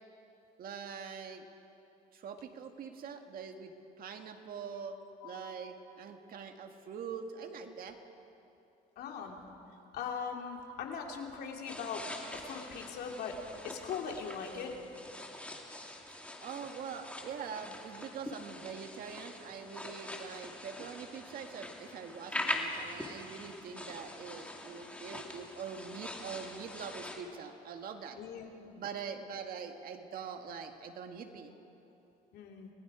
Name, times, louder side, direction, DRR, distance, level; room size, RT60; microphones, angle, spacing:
voice 1, 0.6-1.4 2.1-5.0 5.2-8.0 16.4-28.2 28.8-31.5, right 6 dB, 60° right, 5 dB, 1.9 m, -44 dB
voice 2, 9.0-9.4 9.9-12.1 12.3-14.7 28.2-28.7 32.3-32.7, left 6 dB, 70° left, 1 dB, 3.1 m, -40 dB
sound 1, 11.7-27.2, left 1 dB, 10° left, 2.4 m, -43 dB
29.5 x 20.0 x 5.0 m, 2.9 s
cardioid pair, 110°, 17 cm